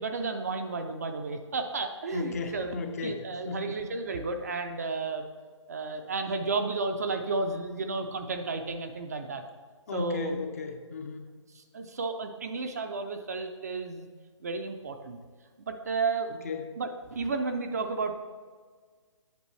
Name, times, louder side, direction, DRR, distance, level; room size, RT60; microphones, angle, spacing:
voice 1, 0.0-5.3 5.7-9.4 9.9-10.4 11.5-14.1 14.4-15.2 15.6-16.3 16.8-18.1, right 3 dB, 30° right, 6 dB, 0.4 m, -32 dB
voice 2, 2.1-3.2 3.5-3.8 9.9-11.3 16.4-16.7, left 4 dB, 30° left, 6 dB, 0.6 m, -35 dB
8.1 x 8.0 x 3.2 m, 1.5 s
hypercardioid pair, 160°, 16 cm